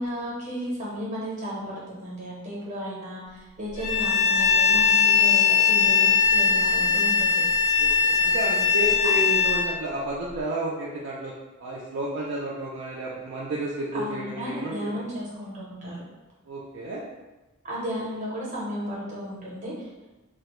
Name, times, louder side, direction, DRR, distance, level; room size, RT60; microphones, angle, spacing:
voice 1, 0.0-7.4 13.9-16.0 17.6-19.9, equal, 35° right, -6 dB, 0.7 m, -34 dB
Bowed string instrument, 3.8-9.7, left 6 dB, 30° left, 0.6 m, -20 dB
voice 2, 7.8-11.3 11.6-15.1 16.5-17.0, right 2 dB, 55° right, -5 dB, 0.3 m, -31 dB
2.2 x 2.0 x 2.9 m, 1.1 s
head